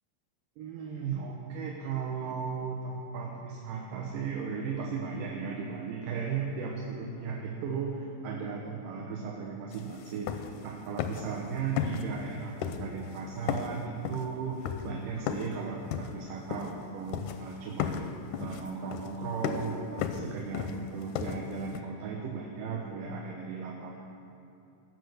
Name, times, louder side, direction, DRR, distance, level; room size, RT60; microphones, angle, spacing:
voice 1, 0.6-18.0 18.4-24.1, right 5 dB, 75° right, -1 dB, 2.6 m, -36 dB
sound 1, 9.7-9.8 10.1-10.7 11.0-11.4 11.8-12.3 12.6-13.2 13.5-15.6 15.9-16.9 17.1-17.5 17.8-21.8, left 8 dB, 80° left, 1.9 m, -35 dB
18.5 x 6.8 x 6.6 m, 2.8 s
omnidirectional pair, 4.0 m